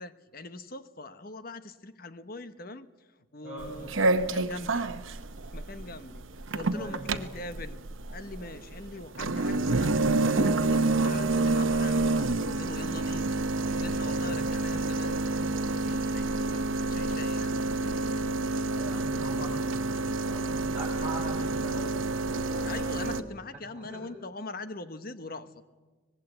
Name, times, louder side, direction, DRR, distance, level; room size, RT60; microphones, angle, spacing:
voice 1, 0.0-2.9 3.3-3.9 4.1-4.9 5.5-6.2 6.5-7.8 8.1-13.4 13.7-17.6 22.6-25.5, left 2 dB, 45° left, 11 dB, 1.1 m, -42 dB
voice 2, 3.4-3.8 6.7-7.0 14.0-14.4 18.7-22.0 23.7-24.0 25.3-25.4, right 1 dB, 5° right, -10 dB, 7.6 m, -41 dB
sound 1, 3.6-23.2, right 2 dB, 75° right, 0.9 m, -28 dB
25.0 x 19.5 x 8.1 m, 1.3 s
head